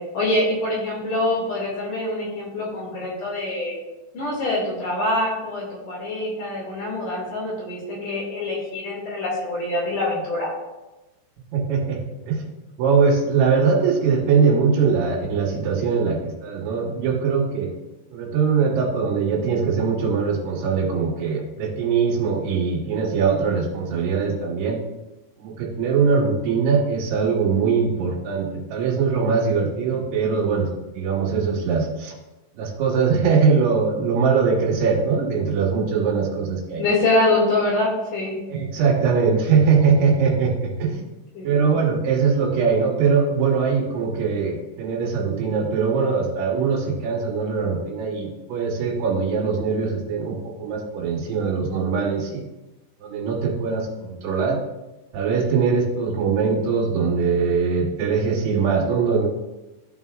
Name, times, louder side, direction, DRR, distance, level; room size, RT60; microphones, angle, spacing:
voice 1, 0.1-3.8 4.1-10.5 36.8-38.3 41.3-41.7, left 2 dB, 55° left, -4 dB, 3.2 m, -24 dB
voice 2, 11.5-12.4 12.8-17.7 18.1-24.8 25.4-30.7 30.9-32.1 32.6-36.8 38.5-41.0 41.4-52.4 53.0-54.6 55.1-59.3, right 5 dB, 80° right, -3 dB, 3.3 m, -21 dB
13.5 x 5.4 x 2.4 m, 1.0 s
omnidirectional pair, 5.2 m